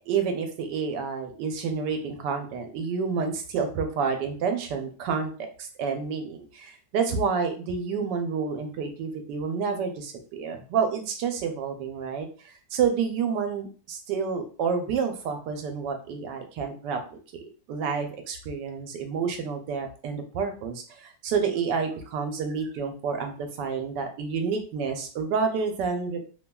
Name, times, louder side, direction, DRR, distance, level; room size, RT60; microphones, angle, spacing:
voice 1, 0.0-5.3 5.6-12.3 12.7-17.0 17.3-26.3, right 6 dB, 90° right, 5 dB, 1.2 m, -29 dB
3.1 x 2.3 x 2.2 m, 0.38 s
omnidirectional pair, 1.8 m